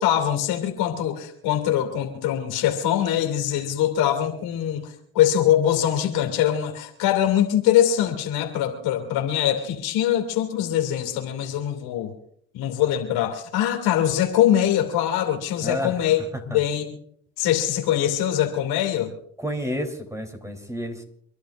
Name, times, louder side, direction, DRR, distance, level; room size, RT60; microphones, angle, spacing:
voice 1, 0.0-12.1 12.5-16.2 16.5-16.8 17.4-19.1, left 11 dB, 80° left, 5 dB, 2.8 m, -23 dB
voice 2, 15.6-15.9 16.5-16.6 19.4-21.0, equal, 10° right, 6 dB, 3.6 m, -30 dB
30.0 x 12.0 x 2.6 m, 0.65 s
hypercardioid pair, 60°, 38 cm